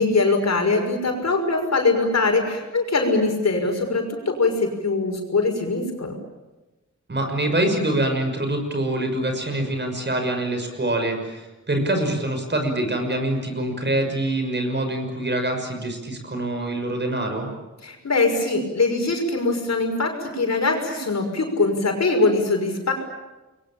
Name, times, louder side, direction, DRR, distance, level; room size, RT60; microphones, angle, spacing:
voice 1, 0.0-6.2 17.8-22.9, left 3 dB, 65° left, 3 dB, 6.0 m, -22 dB
voice 2, 7.1-17.5, right 1 dB, 40° right, 4 dB, 6.1 m, -25 dB
29.0 x 22.5 x 8.8 m, 1.1 s
wide cardioid pair, 115°, 29 cm